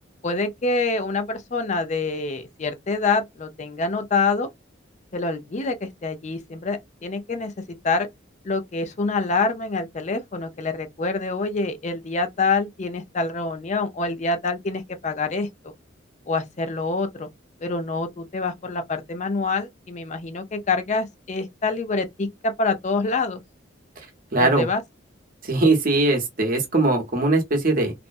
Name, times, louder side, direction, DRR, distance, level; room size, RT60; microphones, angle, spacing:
voice 1, 0.2-4.5 5.1-7.5 7.8-8.1 8.4-15.7 16.3-17.3 17.6-23.4 24.4-24.8, left 3 dB, 40° left, 0.5 m, -26 dB
voice 2, 24.3-24.7 25.4-27.9, right 2 dB, 45° right, 0.8 m, -20 dB
2.4 x 2.1 x 2.5 m
head